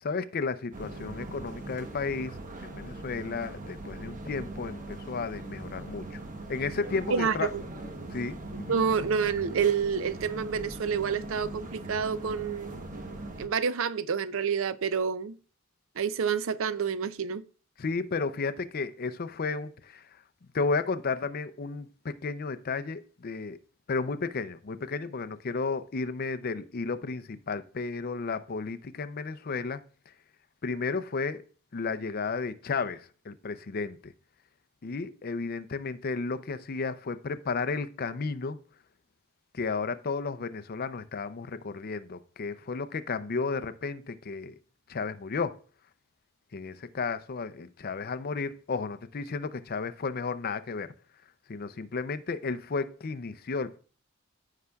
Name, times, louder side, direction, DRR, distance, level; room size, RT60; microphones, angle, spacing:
voice 1, 0.0-6.2 6.5-7.5 8.1-8.8 17.8-20.0 20.5-23.6 23.9-29.8 30.6-31.4 31.7-34.1 34.8-38.6 39.5-44.5 44.9-45.5 46.5-50.9 51.5-53.8, left 4 dB, 45° left, 0.5 m, -33 dB
sound 1, 0.7-13.5, right 2 dB, 40° right, 1.0 m, -41 dB
voice 2, 7.1-7.6 8.7-12.8 13.4-15.4 16.0-17.4, right 6 dB, 70° right, 0.5 m, -28 dB
14.5 x 5.7 x 2.3 m
head